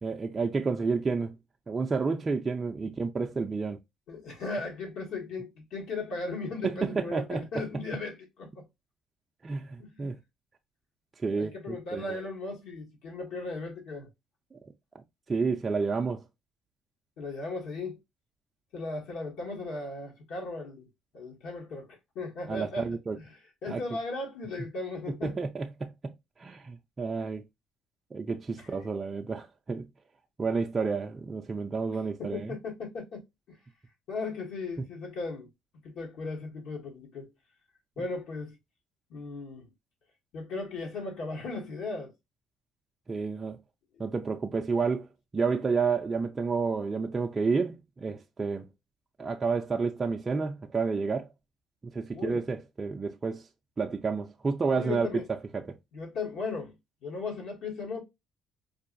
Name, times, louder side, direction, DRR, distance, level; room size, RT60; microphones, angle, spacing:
voice 1, 0.0-1.3 1.7-3.8 6.6-7.4 9.4-10.2 11.2-12.2 14.5-14.6 15.3-16.2 22.5-23.2 23.7-23.8 25.2-25.7 26.4-27.4 28.1-29.9 30.4-32.6 34.8-34.9 43.1-43.6 44.0-45.1 45.3-48.7 49.2-51.3 51.9-53.5 53.8-55.1 55.5-55.6, right 4 dB, 20° right, 0.4 m, -30 dB
voice 2, 4.1-8.6 9.6-10.1 11.3-14.1 17.2-18.0 18.7-20.9 21.1-23.3 23.6-25.4 28.6-28.7 32.2-33.2 33.5-33.6 34.1-35.5 35.8-37.3 38.0-38.6 39.1-39.6 40.3-42.1 52.1-52.4 54.8-55.3 55.9-56.7 57.0-58.0, left 3 dB, 70° left, 1.4 m, -37 dB
4.6 x 2.5 x 2.5 m
cardioid pair, 145°, 0 cm